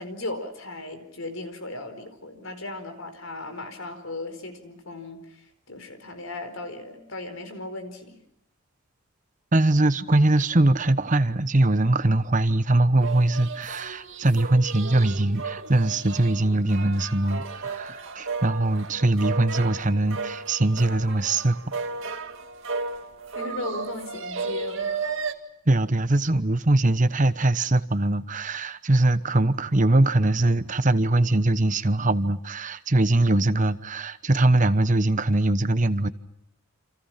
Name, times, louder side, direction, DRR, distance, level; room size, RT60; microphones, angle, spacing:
voice 1, 0.0-8.2 23.3-25.0, left 2 dB, 80° left, 4.7 m, -37 dB
voice 2, 9.5-21.6 25.7-36.1, right 2 dB, 40° right, 1.0 m, -22 dB
sound 1, 13.0-25.3, right 4 dB, 70° right, 2.2 m, -34 dB
29.0 x 27.5 x 5.8 m
head